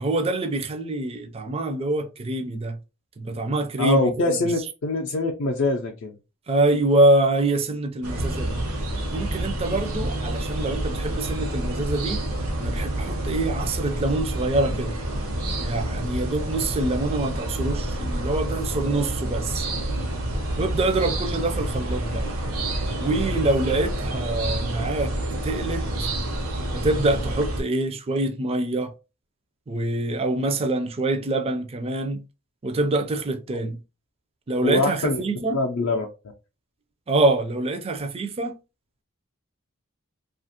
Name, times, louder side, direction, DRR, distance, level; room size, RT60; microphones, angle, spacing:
voice 1, 0.0-2.8 3.2-4.4 6.5-8.6 9.1-12.2 12.6-15.0 15.6-19.7 20.6-22.3 23.0-25.1 25.4-25.8 26.7-28.9 29.7-32.2 32.6-33.8 34.5-35.6 37.1-38.6, right 2 dB, 30° right, 0.4 m, -25 dB
voice 2, 3.8-6.1 34.6-35.2 35.5-36.1, left 2 dB, 60° left, 0.4 m, -24 dB
sound 1, 8.0-27.6, right 1 dB, 90° right, 0.8 m, -28 dB
2.7 x 2.4 x 2.7 m
head